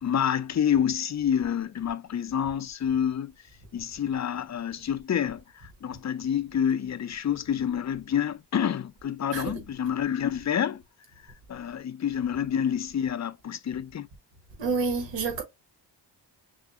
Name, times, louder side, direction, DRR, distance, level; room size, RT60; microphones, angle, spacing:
voice 1, 0.0-3.3 3.7-10.8 11.5-14.1, left 9 dB, 40° left, 0.5 m, -28 dB
voice 2, 9.3-9.6 14.6-15.4, right 4 dB, 90° right, 1.3 m, -28 dB
6.2 x 2.1 x 2.7 m
cardioid pair, 65°, 43 cm